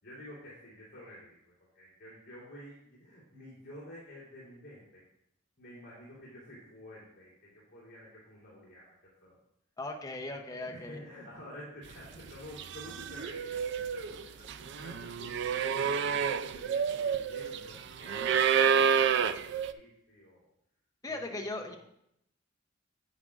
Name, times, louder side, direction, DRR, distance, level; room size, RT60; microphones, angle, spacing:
voice 1, 0.0-5.0 5.6-9.4 10.5-20.5 21.1-21.8, equal, 55° left, -7 dB, 2.8 m, -50 dB
voice 2, 9.8-11.0 21.0-21.8, left 2 dB, 20° left, 1 dB, 0.7 m, -38 dB
sound 1, 12.1-12.3 12.6-19.7, right 7 dB, 65° right, 0.4 m, -29 dB
9.7 x 8.6 x 2.5 m, 0.75 s
head